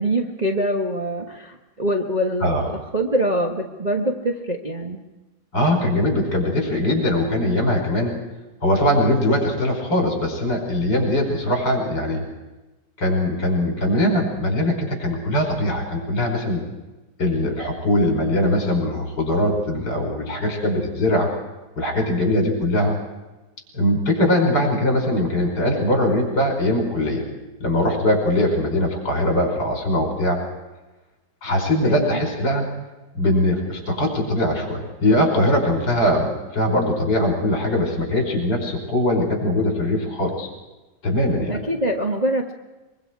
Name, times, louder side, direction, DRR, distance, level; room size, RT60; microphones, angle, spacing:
voice 1, 0.0-2.6 2.9-5.0 31.8-32.2 41.4-42.5, right 1 dB, 25° right, 0 dB, 1.3 m, -24 dB
voice 2, 5.5-8.2 8.6-12.2 13.0-16.6 17.2-21.3 21.8-23.0 23.7-27.2 27.6-30.4 31.4-32.7 33.1-40.5 41.0-41.6, left 1 dB, 60° left, 1 dB, 6.0 m, -21 dB
23.5 x 23.0 x 4.8 m, 1.1 s
omnidirectional pair, 2.1 m